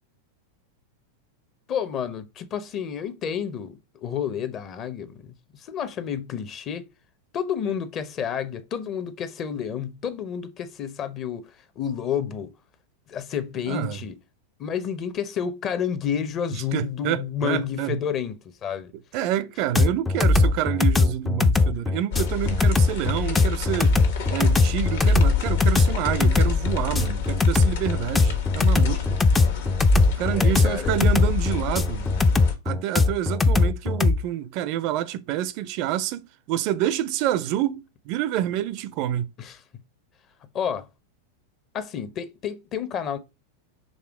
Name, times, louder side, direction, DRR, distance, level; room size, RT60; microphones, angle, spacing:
voice 1, 1.7-6.9 7.3-12.5 13.1-14.2 14.6-18.3 18.6-18.9 19.8-19.9 30.3-31.0 39.4-39.6 40.5-40.9 41.7-43.2, left 8 dB, 30° left, 0.9 m, -30 dB
voice 2, 13.7-14.0 16.5-18.0 19.1-24.0 24.3-29.2 30.2-32.1 32.6-39.3, right 12 dB, 45° right, 0.5 m, -28 dB
sound 1, 19.7-34.2, left 3 dB, 10° left, 0.5 m, -20 dB
sound 2, 22.1-32.6, left 7 dB, 55° left, 1.4 m, -29 dB
6.5 x 3.5 x 4.8 m
figure-of-eight pair, 90°, 0 cm